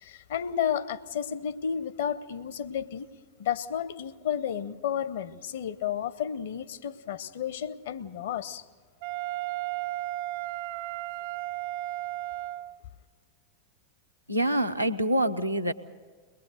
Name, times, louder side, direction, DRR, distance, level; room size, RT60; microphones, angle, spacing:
voice 1, 0.0-3.1 3.4-8.6, left 8 dB, 60° left, 15 dB, 0.8 m, -32 dB
Wind instrument woodwind instrument, 9.0-12.8, right 16 dB, 55° right, 0.8 m, -34 dB
voice 2, 14.3-15.7, right 1 dB, 90° right, 5 dB, 0.8 m, -26 dB
22.5 x 20.5 x 6.5 m, 1.5 s
figure-of-eight pair, 90°, 0 cm